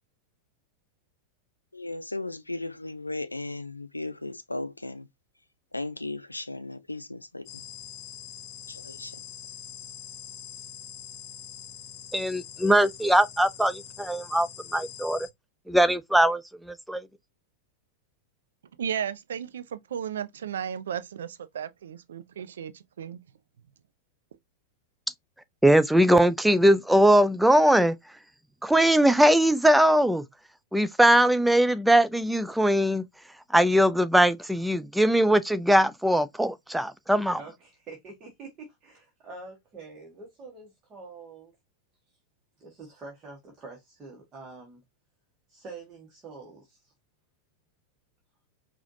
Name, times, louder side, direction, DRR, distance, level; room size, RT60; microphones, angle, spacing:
voice 1, 1.7-5.1 5.7-7.5 8.8-9.1, left 2 dB, 85° left, 0.4 m, -36 dB
sound 1, 7.5-15.3, left 9 dB, 40° left, 0.9 m, -44 dB
voice 2, 12.1-15.3 15.7-17.0 25.6-28.0 28.6-30.2 30.7-33.1 33.5-37.4, right 1 dB, 5° right, 0.4 m, -21 dB
voice 3, 18.8-23.2, right 8 dB, 65° right, 0.4 m, -34 dB
voice 4, 37.4-41.5 42.6-44.8 45.5-46.9, right 3 dB, 25° right, 1.3 m, -46 dB
4.9 x 2.5 x 2.6 m
figure-of-eight pair, 90°, 0 cm